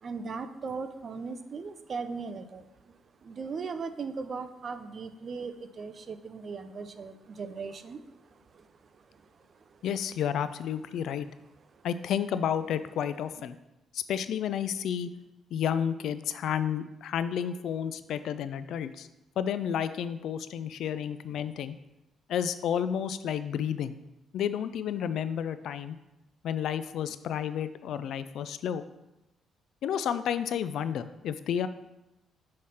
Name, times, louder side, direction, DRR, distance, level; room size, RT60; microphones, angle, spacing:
voice 1, 0.0-2.7 3.2-8.0 8.5-8.7 9.1-9.2 9.7-9.8, right 5 dB, 50° right, 10 dB, 0.5 m, -38 dB
voice 2, 9.8-11.3 11.8-13.6 13.9-15.1 15.5-19.1 19.4-21.8 22.3-24.0 24.3-26.0 26.4-28.8 29.8-31.7, left 9 dB, 75° left, 13 dB, 0.3 m, -31 dB
5.7 x 3.2 x 5.5 m, 0.95 s
cardioid pair, 90°, 0 cm